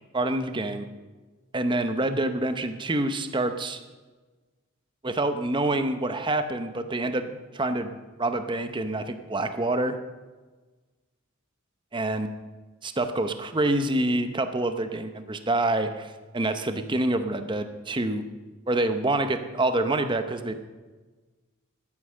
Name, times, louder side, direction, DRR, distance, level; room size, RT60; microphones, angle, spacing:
voice 1, 0.1-0.9 1.5-3.8 5.0-7.9 8.2-10.0 11.9-12.3 12.8-18.2 18.7-20.5, right 2 dB, 20° right, 8 dB, 0.8 m, -27 dB
12.0 x 9.5 x 6.6 m, 1.3 s
head